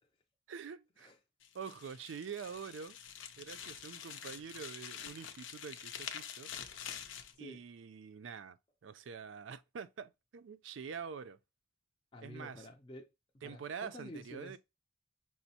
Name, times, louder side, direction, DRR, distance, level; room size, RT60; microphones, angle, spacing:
voice 1, 0.5-1.1 1.5-3.0 3.4-6.5 6.8-7.1 7.4-8.6 8.8-11.4 12.2-12.7 13.4-14.6, right 6 dB, 80° right, 0.4 m, -46 dB
sound 1, 1.4-7.3, left 8 dB, 80° left, 0.5 m, -47 dB
voice 2, 7.3-7.6 12.1-14.6, left 1 dB, 25° left, 0.4 m, -51 dB
6.0 x 2.0 x 2.7 m
head